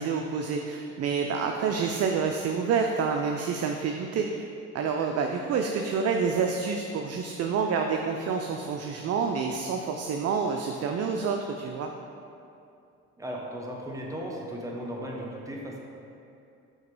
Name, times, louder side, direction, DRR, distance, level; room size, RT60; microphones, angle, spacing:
voice 1, 0.0-4.4 4.7-11.9, right 5 dB, 50° right, 3 dB, 0.4 m, -28 dB
voice 2, 13.2-15.8, equal, 10° right, -2 dB, 1.0 m, -36 dB
6.3 x 2.9 x 5.3 m, 2.6 s
cardioid pair, 85°, 32 cm